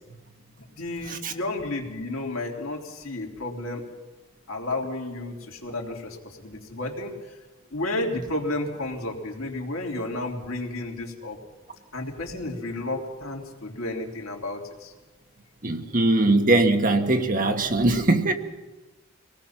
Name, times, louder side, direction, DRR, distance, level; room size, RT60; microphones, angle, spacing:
voice 1, 0.7-3.8 4.5-7.1 7.7-11.4 11.9-14.9, left 2 dB, 85° left, 0 dB, 3.3 m, -32 dB
voice 2, 15.6-18.3, right 2 dB, 40° right, 5 dB, 1.4 m, -21 dB
24.5 x 18.5 x 5.9 m, 1.2 s
head